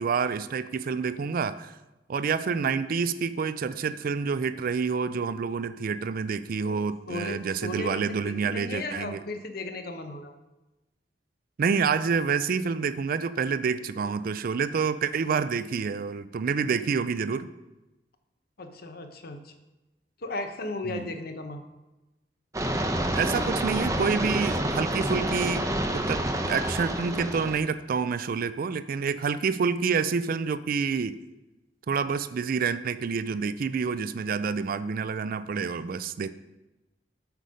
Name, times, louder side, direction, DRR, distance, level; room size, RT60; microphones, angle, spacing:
voice 1, 0.0-1.8 2.1-9.2 11.6-17.5 20.8-21.0 23.1-25.7 25.9-31.2 31.9-36.3, right 5 dB, 55° right, 14 dB, 0.4 m, -28 dB
voice 2, 7.1-10.3 18.6-19.5 20.2-21.6, left 2 dB, 60° left, 7 dB, 0.9 m, -36 dB
sound 1, 22.5-27.6, right 1 dB, 20° right, 0.7 m, -28 dB
8.1 x 5.3 x 6.3 m, 1.0 s
head